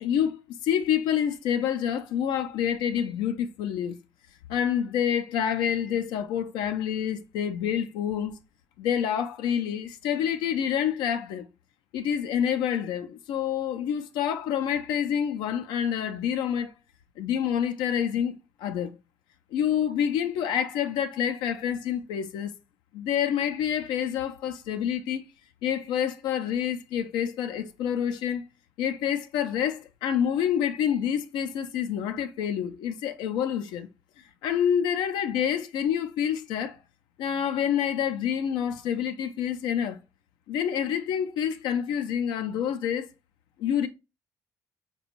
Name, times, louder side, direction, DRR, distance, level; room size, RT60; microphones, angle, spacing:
voice 1, 0.0-4.0 4.5-8.4 8.8-11.5 11.9-16.7 17.2-19.0 19.5-22.5 22.9-25.2 25.6-28.4 28.8-33.9 34.4-36.8 37.2-40.0 40.5-43.1 43.6-43.9, left 9 dB, 85° left, 0.4 m, -27 dB
4.1 x 2.2 x 2.9 m
supercardioid pair, 60°, 8 cm